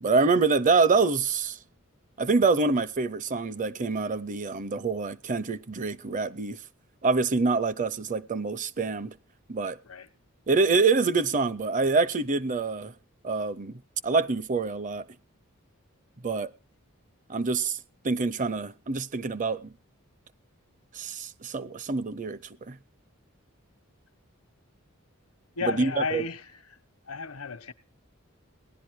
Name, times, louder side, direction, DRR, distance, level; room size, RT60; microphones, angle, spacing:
voice 1, 0.0-1.6 2.2-6.6 7.0-9.2 9.5-9.8 10.5-12.9 13.2-15.0 16.2-16.5 17.3-17.8 18.0-19.7 20.9-22.4 22.7-22.8 25.8-26.2, right 4 dB, 35° right, 0.6 m, -26 dB
voice 2, 25.5-26.8 27.0-27.7, left 4 dB, 85° left, 1.1 m, -33 dB
17.5 x 11.0 x 4.7 m
head